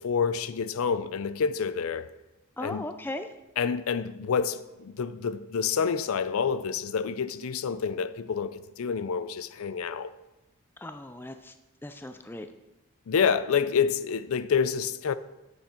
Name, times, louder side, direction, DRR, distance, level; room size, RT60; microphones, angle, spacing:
voice 1, 0.0-2.1 2.6-2.9 3.6-10.1 13.1-15.2, left 6 dB, 75° left, 0.4 m, -28 dB
voice 2, 2.6-3.3 10.8-11.5 11.8-12.5, left 1 dB, 10° left, 0.4 m, -37 dB
9.3 x 7.0 x 4.4 m
head